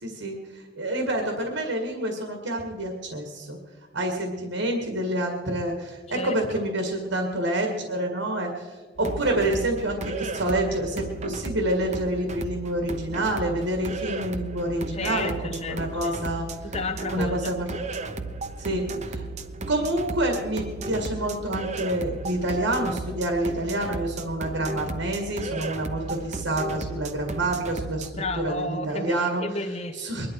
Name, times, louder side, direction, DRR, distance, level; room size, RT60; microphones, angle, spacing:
voice 1, 0.0-3.6 3.9-16.5 17.1-17.7 18.6-19.2 19.7-29.4 30.0-30.3, right 1 dB, 80° right, 3 dB, 2.0 m, -28 dB
sound 1, 9.0-28.1, right 3 dB, 35° right, 0.9 m, -35 dB
voice 2, 14.9-16.1 16.6-17.5 28.2-30.0, left 2 dB, 35° left, 7 dB, 1.1 m, -32 dB
22.5 x 11.5 x 4.7 m, 1.5 s
head